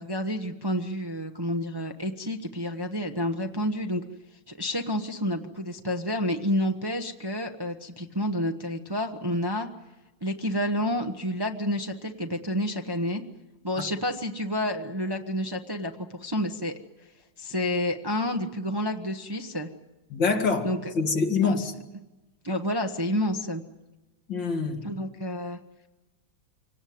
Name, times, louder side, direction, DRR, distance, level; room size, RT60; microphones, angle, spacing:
voice 1, 0.0-4.0 4.5-9.7 10.2-13.2 13.6-16.7 17.4-19.7 20.6-20.8 21.4-21.7 22.4-23.6 24.8-25.6, left 1 dB, 15° right, 0.8 m, -29 dB
voice 2, 20.1-20.7 20.9-21.7 24.3-24.8, left 4 dB, 75° left, 2.9 m, -25 dB
26.0 x 18.5 x 9.4 m
omnidirectional pair, 2.0 m